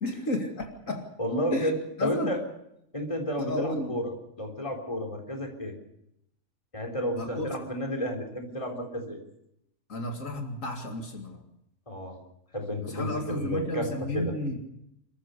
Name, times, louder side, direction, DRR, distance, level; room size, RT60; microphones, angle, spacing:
voice 1, 0.0-1.1 1.5-1.7 2.0-2.4 3.4-3.9 7.2-7.5 9.9-11.4 12.8-14.6, left 1 dB, 80° left, 3 dB, 2.8 m, -32 dB
voice 2, 1.2-2.4 2.9-4.1 4.4-5.8 6.7-9.2 11.9-12.2 12.5-14.4, equal, 25° left, 2 dB, 4.0 m, -32 dB
28.0 x 14.0 x 6.9 m, 0.78 s
omnidirectional pair, 1.3 m